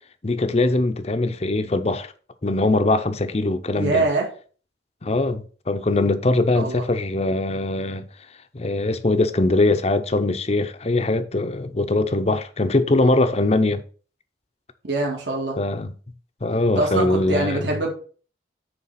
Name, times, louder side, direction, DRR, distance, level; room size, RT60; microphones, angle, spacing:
voice 1, 0.2-2.1 2.4-4.0 5.0-8.1 8.5-13.8 15.6-15.9 16.4-17.7, left 2 dB, 35° left, 0.6 m, -21 dB
voice 2, 3.8-4.3 6.5-6.8 14.8-15.6 16.8-17.9, right 2 dB, 75° right, 2.3 m, -24 dB
9.5 x 3.4 x 5.7 m
head